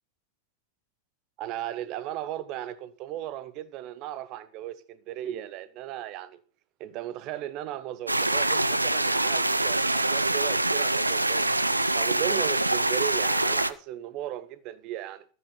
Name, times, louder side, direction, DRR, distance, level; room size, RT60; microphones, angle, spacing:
voice 1, 1.4-6.4 6.8-11.6 11.9-15.2, right 12 dB, 40° right, 1.3 m, -36 dB
sound 1, 8.1-13.7, right 2 dB, 85° right, 0.7 m, -25 dB
13.0 x 9.4 x 5.9 m
figure-of-eight pair, 90°, 0 cm